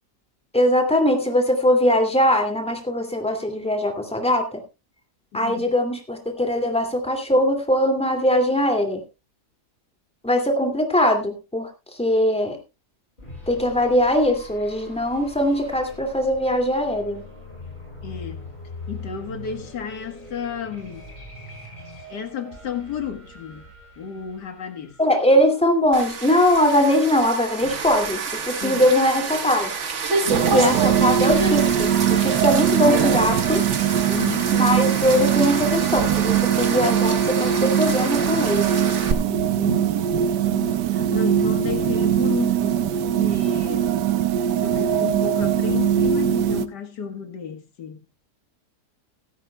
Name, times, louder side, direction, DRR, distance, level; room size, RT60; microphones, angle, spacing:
voice 1, 0.5-4.6 5.3-9.0 10.2-11.7 12.0-12.6 13.5-17.2 25.0-29.7 30.3-33.6 34.5-38.8, left 1 dB, 5° left, 2.3 m, -21 dB
voice 2, 5.3-5.7 18.0-18.4 18.9-21.1 22.1-23.7 24.0-25.0 28.6-28.9 30.3-30.8 34.1-34.6 39.3-40.1 40.5-43.9 44.6-48.1, left 8 dB, 80° left, 2.1 m, -32 dB
sound 1, 13.2-25.9, left 2 dB, 30° left, 5.7 m, -41 dB
sound 2, 25.9-39.1, right 4 dB, 45° right, 1.5 m, -28 dB
sound 3, 30.3-46.7, right 9 dB, 80° right, 1.4 m, -21 dB
16.5 x 14.0 x 2.3 m
omnidirectional pair, 1.8 m